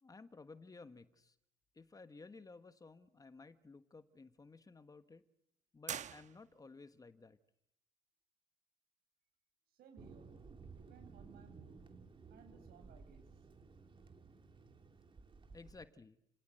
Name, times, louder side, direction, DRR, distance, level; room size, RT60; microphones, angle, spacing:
voice 1, 0.0-1.4 1.7-5.2 5.7-7.4 15.5-16.2, left 3 dB, 20° left, 11 dB, 1.5 m, -56 dB
sound 1, 5.9-6.9, right 8 dB, 50° right, 1.2 m, -45 dB
voice 2, 9.7-10.3 10.7-11.9 12.3-13.2, right 6 dB, 70° right, 7 dB, 7.7 m, -61 dB
Thunder, 10.0-15.9, right 4 dB, 30° right, 2.5 m, -56 dB
30.0 x 17.5 x 7.9 m, 0.80 s
cardioid pair, 90°, 16 cm